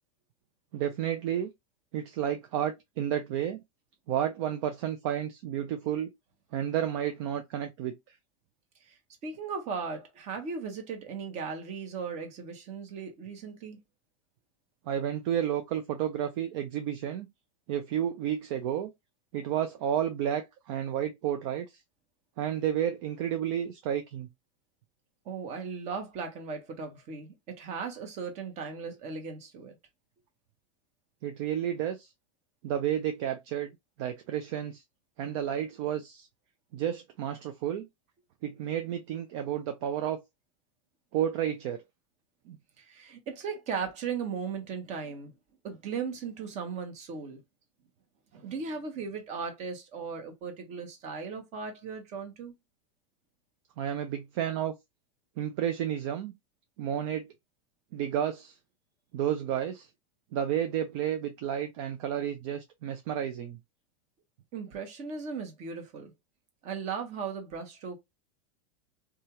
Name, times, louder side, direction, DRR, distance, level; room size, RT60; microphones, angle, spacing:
voice 1, 0.7-1.5 1.9-3.6 4.1-6.1 6.5-8.2 14.9-17.3 17.7-18.9 19.3-21.8 22.4-24.3 31.2-32.1 32.6-33.7 34.0-34.8 35.2-36.3 36.7-37.9 38.4-40.2 41.1-41.8 42.5-42.6 53.8-54.7 55.4-56.3 56.8-57.3 57.9-58.6 59.1-59.9 60.3-63.6, right 10 dB, 60° right, 0.5 m, -31 dB
voice 2, 9.2-13.8 25.2-29.7 42.8-45.3 45.6-47.4 48.3-52.5 64.5-66.1 66.6-68.0, right 5 dB, 45° right, 1.1 m, -37 dB
2.7 x 2.4 x 2.9 m
supercardioid pair, 125°, 17 cm